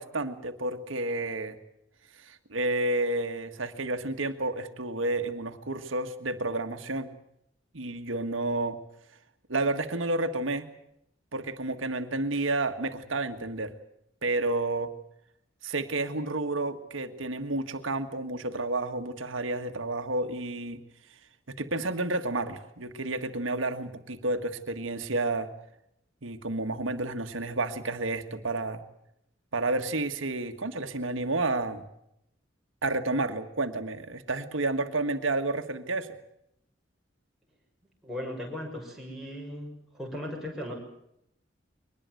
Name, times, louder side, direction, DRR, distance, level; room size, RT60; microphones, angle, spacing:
voice 1, 0.0-1.6 2.1-7.1 7.7-8.8 9.5-10.7 11.3-13.7 14.2-14.9 15.6-20.8 21.5-25.5 26.2-28.8 29.5-31.8 32.8-36.1, right 2 dB, 85° right, 7 dB, 1.7 m, -30 dB
voice 2, 38.0-40.7, left 1 dB, ahead, -2 dB, 6.6 m, -37 dB
23.0 x 20.0 x 7.9 m, 0.77 s
head